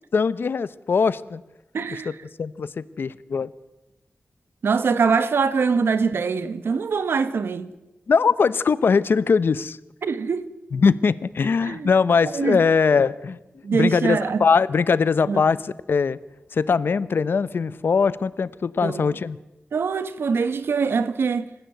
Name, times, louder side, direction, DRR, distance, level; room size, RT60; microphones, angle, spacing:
voice 1, 0.1-1.4 2.1-2.2 2.4-3.5 8.1-9.8 10.7-13.4 13.7-16.2 16.5-19.4, left 5 dB, 70° left, 0.8 m, -21 dB
voice 2, 1.7-2.2 4.6-7.7 10.0-10.5 11.6-11.9 12.2-12.6 13.6-14.4 15.3-15.4 18.8-19.1 19.7-21.5, right 5 dB, 85° right, 1.3 m, -23 dB
27.5 x 15.5 x 7.9 m
wide cardioid pair, 100°, 4 cm